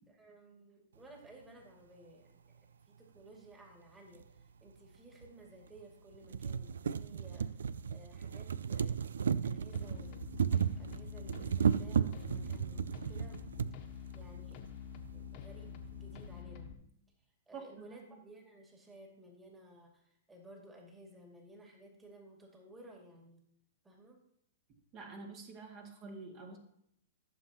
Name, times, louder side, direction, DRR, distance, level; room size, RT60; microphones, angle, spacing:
voice 1, 0.1-2.5 2.8-7.6 7.9-9.0 9.2-10.3 10.8-13.4 13.9-14.6 15.1-16.7 17.5-23.4 23.8-24.2, right 1 dB, 15° right, 0 dB, 2.3 m, -56 dB
sound 1, 4.2-4.3 5.2-5.3 5.8-5.9 6.1-13.7 14.6-14.7 15.0-15.1, right 7 dB, 75° right, 0.4 m, -34 dB
sound 2, 9.7-16.7, left 7 dB, 45° left, 1.3 m, -47 dB
voice 2, 17.5-18.0 24.9-26.6, right 4 dB, 35° right, 0 dB, 2.1 m, -48 dB
14.5 x 7.3 x 2.9 m, 0.71 s
hypercardioid pair, 115°, 0 cm